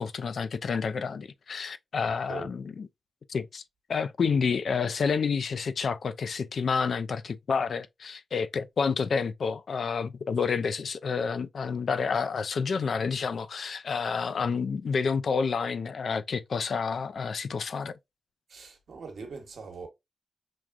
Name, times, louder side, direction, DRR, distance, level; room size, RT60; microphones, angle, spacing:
voice 1, 0.0-2.9 3.3-3.6 3.9-18.0, left 5 dB, 70° left, 0.3 m, -29 dB
voice 2, 18.5-19.9, right 4 dB, 75° right, 1.0 m, -41 dB
6.1 x 2.4 x 2.3 m
supercardioid pair, 45°, 0 cm